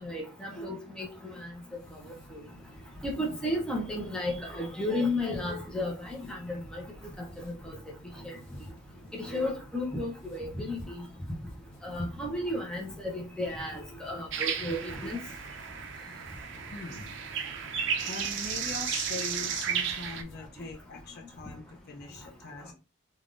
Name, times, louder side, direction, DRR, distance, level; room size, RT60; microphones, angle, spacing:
voice 1, 0.0-1.5 3.0-6.8 7.4-7.8 8.2-8.4 9.2-11.0 11.8-15.2, left 1 dB, 5° left, -1 dB, 0.6 m, -33 dB
sound 1, 1.7-20.5, right 1 dB, 85° left, 1.1 m, -52 dB
sound 2, 14.3-20.2, right 7 dB, 60° right, 0.4 m, -34 dB
voice 2, 16.7-17.2 18.1-22.7, left 3 dB, 50° left, 2 dB, 0.5 m, -41 dB
3.4 x 2.4 x 2.5 m, 0.31 s
head